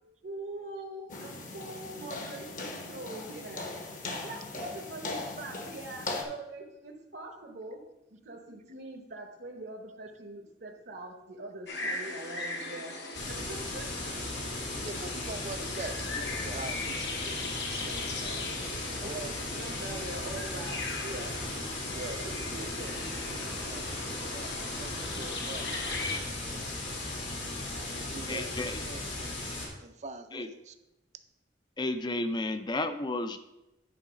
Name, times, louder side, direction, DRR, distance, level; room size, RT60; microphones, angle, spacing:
voice 1, 0.2-3.7 4.2-7.8 8.2-13.0 13.3-14.1 19.0-21.3 22.2-23.0, right 2 dB, 60° right, 0 dB, 1.0 m, -43 dB
sound 1, 1.1-6.2, left 2 dB, 45° left, 1.0 m, -39 dB
sound 2, 11.7-26.2, left 3 dB, 65° left, 1.1 m, -39 dB
sound 3, 13.1-29.7, left 2 dB, 85° left, 2.2 m, -37 dB
voice 2, 14.6-19.5 21.9-22.7 23.4-26.9 27.7-29.4 29.8-30.7, right 3 dB, 40° right, 9 dB, 0.5 m, -45 dB
voice 3, 28.3-28.8 30.3-30.5 31.8-33.4, left 2 dB, 25° left, 10 dB, 0.4 m, -32 dB
9.9 x 3.9 x 5.1 m, 0.93 s
head